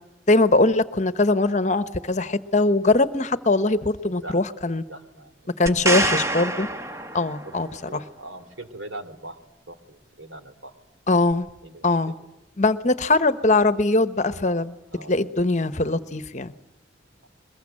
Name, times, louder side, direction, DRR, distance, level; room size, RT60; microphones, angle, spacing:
voice 1, 0.3-4.8 5.6-6.7 7.1-8.0 11.1-11.5 11.8-12.1 12.6-14.7 15.1-16.5, left 2 dB, 40° left, 12 dB, 1.0 m, -21 dB
voice 2, 4.0-4.4 4.9-6.1 7.4-9.4 9.7-10.7 11.6-11.9 14.9-15.2, right 2 dB, 90° right, 9 dB, 2.7 m, -41 dB
sound 1, 5.7-7.6 11.3-11.4, right 2 dB, 15° right, 1.1 m, -26 dB
22.5 x 22.0 x 8.8 m, 0.98 s
head